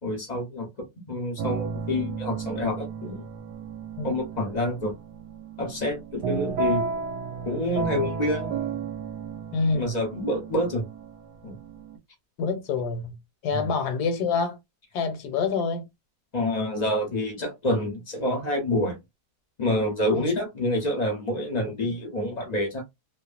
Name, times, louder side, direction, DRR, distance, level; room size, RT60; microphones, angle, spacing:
voice 1, 0.0-3.2 4.0-4.9 5.6-6.9 7.5-8.5 9.7-10.9 11.4-11.6 13.5-13.7 16.3-19.0 19.6-22.8, left 1 dB, 40° left, 0.6 m, -27 dB
sound 1, 1.4-12.0, right 5 dB, 75° right, 1.1 m, -33 dB
voice 2, 9.5-9.9 12.4-13.2 13.4-14.6 14.9-15.9 20.1-20.3 21.6-21.7, left 5 dB, 70° left, 1.2 m, -27 dB
2.9 x 2.2 x 2.3 m
omnidirectional pair, 1.9 m